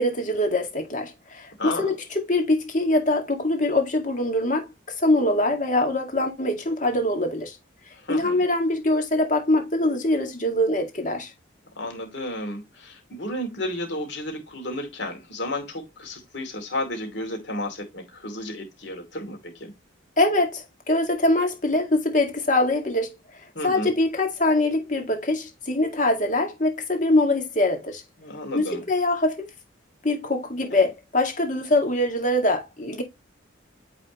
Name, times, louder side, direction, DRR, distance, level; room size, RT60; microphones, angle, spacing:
voice 1, 0.0-4.7 5.0-7.6 8.1-11.3 20.2-23.2 23.6-28.0 28.5-29.5 30.0-33.0, left 1 dB, 40° left, 2.0 m, -23 dB
voice 2, 1.6-1.9 8.0-8.4 11.8-19.7 23.5-23.9 28.2-28.8 30.7-30.8, left 1 dB, 60° left, 2.6 m, -32 dB
9.2 x 4.1 x 3.0 m
head